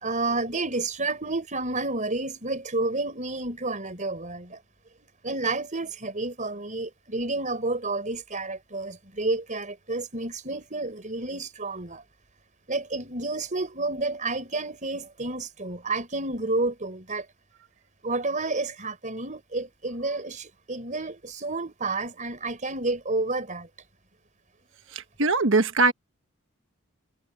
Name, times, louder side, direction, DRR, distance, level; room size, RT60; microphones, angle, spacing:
voice 1, 0.0-4.6 5.2-12.0 12.7-17.2 18.0-23.7, right 2 dB, 35° right, 5.1 m, -30 dB
voice 2, 25.2-25.9, right 3 dB, 60° right, 1.4 m, -20 dB
head